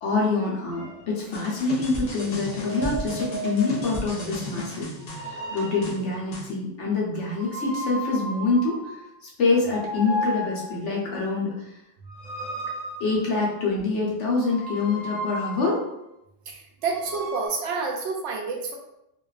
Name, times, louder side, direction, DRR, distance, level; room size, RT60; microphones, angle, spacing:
voice 1, 0.0-4.9 5.2-8.8 9.2-11.7 13.0-15.8, left 3 dB, 85° left, -3 dB, 1.1 m, -25 dB
sound 1, 0.7-1.0 2.5-4.0 5.0-6.1 7.4-9.1 9.6-10.9 12.1-13.7 14.4-15.8 16.8-17.5, equal, 20° left, 1.0 m, -34 dB
sound 2, 1.3-6.5, left 2 dB, 55° left, 0.5 m, -35 dB
voice 2, 16.5-18.8, right 4 dB, 80° right, 0 dB, 0.9 m, -29 dB
2.5 x 2.3 x 2.3 m, 0.85 s
omnidirectional pair, 1.2 m